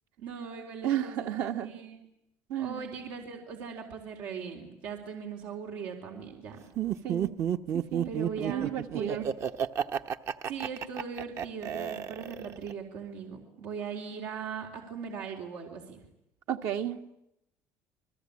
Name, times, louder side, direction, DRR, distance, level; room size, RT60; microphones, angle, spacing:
voice 1, 0.2-2.0 2.6-6.7 8.0-9.3 10.5-16.0, right 6 dB, 90° right, 1 dB, 4.1 m, -40 dB
voice 2, 0.8-1.8 2.5-2.9 7.0-7.3 7.7-8.1 8.5-9.2 16.5-17.2, right 10 dB, 70° right, 5 dB, 1.9 m, -32 dB
Laughter, 6.8-12.7, right 9 dB, 50° right, 1.0 m, -31 dB
29.0 x 21.0 x 8.6 m, 0.80 s
cardioid pair, 130°, 6 cm